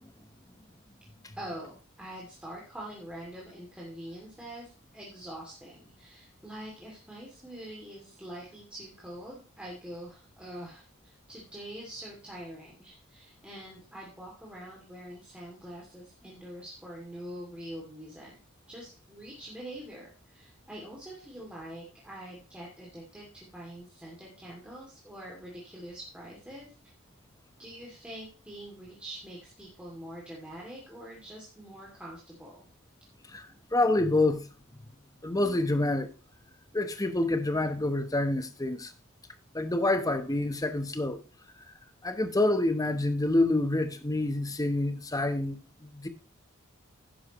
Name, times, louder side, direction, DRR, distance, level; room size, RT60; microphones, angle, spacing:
voice 1, 1.4-18.3 18.7-26.7 27.6-32.7, right 1 dB, 5° right, 2.5 m, -44 dB
voice 2, 33.3-34.5 35.2-36.1 36.7-38.9 39.5-41.2 41.7-41.8 42.0-46.1, left 2 dB, 15° left, 0.9 m, -27 dB
11.0 x 10.5 x 3.0 m
head